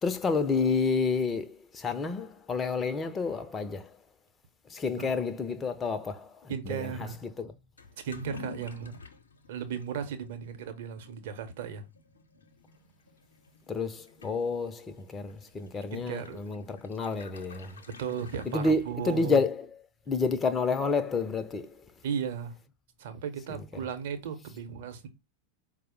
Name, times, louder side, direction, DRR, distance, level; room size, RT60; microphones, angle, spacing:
voice 1, 0.0-4.0 4.7-7.5 13.7-17.8 18.5-19.8 20.1-21.9 23.5-23.7, left 4 dB, 20° left, 0.4 m, -30 dB
voice 2, 6.5-7.2 8.0-9.0 9.5-11.8 15.9-16.5 18.0-19.4 22.0-22.6 23.0-25.1, right 7 dB, 55° right, 0.8 m, -36 dB
Toilet flush / Liquid, 7.8-19.4, left 3 dB, 70° left, 0.6 m, -51 dB
4.7 x 2.0 x 4.5 m
figure-of-eight pair, 90°, 0 cm